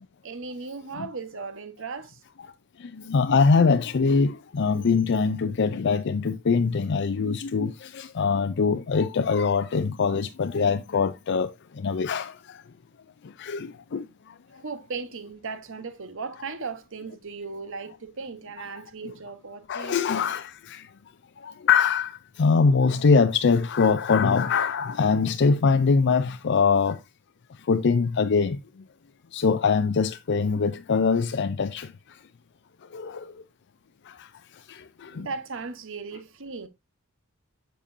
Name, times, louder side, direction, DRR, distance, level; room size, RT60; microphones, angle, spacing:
voice 1, 0.2-2.2 14.5-20.0 35.1-36.7, right 4 dB, 65° right, 1.1 m, -37 dB
voice 2, 2.8-12.6 13.2-14.6 19.7-20.9 21.4-27.0 27.7-28.6 29.3-32.2 32.9-33.3 34.1-34.3 34.7-35.3, left 5 dB, 55° left, 0.5 m, -23 dB
7.4 x 6.8 x 2.6 m
head